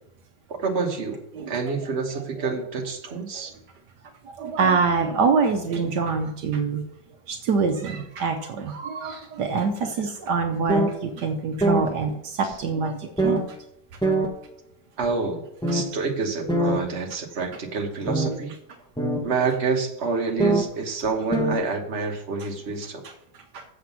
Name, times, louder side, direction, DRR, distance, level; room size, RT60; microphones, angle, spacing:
voice 1, 0.5-1.2 1.5-3.5 15.0-15.4 15.7-18.5 19.2-23.0, right 4 dB, 40° right, 1 dB, 1.5 m, -28 dB
voice 2, 2.1-2.5 3.1-3.5 4.2-6.8 7.3-13.6 23.0-23.6, right 5 dB, 75° right, 5 dB, 1.4 m, -26 dB
sound 1, 10.7-10.9 11.6-11.8 12.5-12.6 13.2-13.4 14.0-14.3 15.0-15.1 15.6-15.9 16.5-16.8 18.1-18.3 19.0-19.2 20.4-20.6 21.0-21.1 21.3-21.6, right 2 dB, 5° left, 1.1 m, -22 dB
7.6 x 7.0 x 5.8 m, 0.78 s
omnidirectional pair, 1.9 m